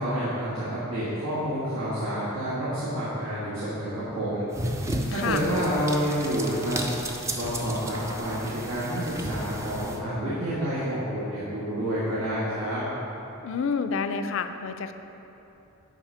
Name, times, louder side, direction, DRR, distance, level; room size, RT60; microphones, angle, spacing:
voice 1, 0.0-4.5 5.1-6.8 7.3-12.8, equal, 85° right, -10 dB, 1.8 m, -29 dB
sound 1, 4.5-10.0, right 1 dB, 15° right, 0.4 m, -34 dB
voice 2, 5.1-5.4 13.4-14.9, left 5 dB, 60° left, 9 dB, 0.4 m, -28 dB
11.0 x 4.0 x 5.0 m, 3.0 s
head